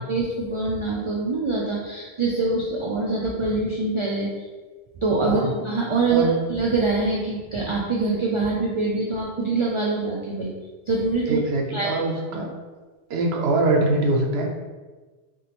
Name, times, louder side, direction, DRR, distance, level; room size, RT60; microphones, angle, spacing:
voice 1, 0.0-4.3 5.0-10.5 10.9-11.4 11.7-11.9 12.3-12.4, right 3 dB, 45° right, -3 dB, 0.4 m, -24 dB
voice 2, 11.3-12.5 13.1-14.5, right 2 dB, 80° right, 0 dB, 0.9 m, -23 dB
3.6 x 2.8 x 2.9 m, 1.3 s
omnidirectional pair, 1.1 m